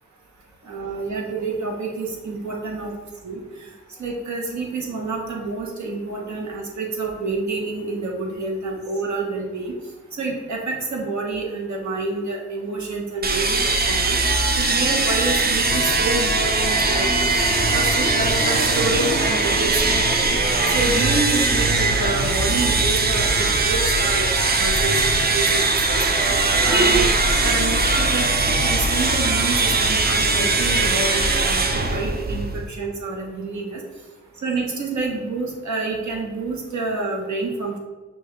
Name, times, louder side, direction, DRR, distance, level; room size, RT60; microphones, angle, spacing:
voice 1, 0.7-2.9 3.2-3.4 4.0-9.7 10.2-14.2 14.6-17.3 17.7-20.4 20.7-24.3 24.6-26.0 26.6-27.1 27.4-33.8 34.4-37.8, right 3 dB, 70° right, -1 dB, 1.1 m, -28 dB
sound 1, 13.2-32.7, right 3 dB, 35° right, 0.5 m, -20 dB
sound 2, 15.6-31.8, left 4 dB, 25° left, 0.4 m, -31 dB
6.0 x 2.4 x 3.2 m, 1.3 s
cardioid pair, 55°, 29 cm